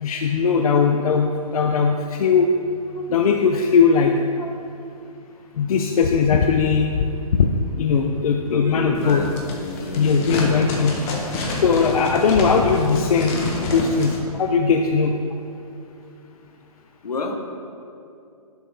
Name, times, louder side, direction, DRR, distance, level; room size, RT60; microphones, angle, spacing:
voice 1, 0.0-2.5 3.1-4.2 5.6-6.9 7.4-7.5 7.8-9.2 10.0-11.0 11.6-15.1, left 5 dB, 65° left, 3 dB, 0.4 m, -19 dB
voice 2, 8.4-10.4 17.0-17.4, left 3 dB, 85° left, 3 dB, 0.8 m, -30 dB
sound 1, 8.9-14.2, left 2 dB, 20° left, 0.6 m, -27 dB
10.5 x 4.1 x 2.2 m, 2.6 s
hypercardioid pair, 140°, 20 cm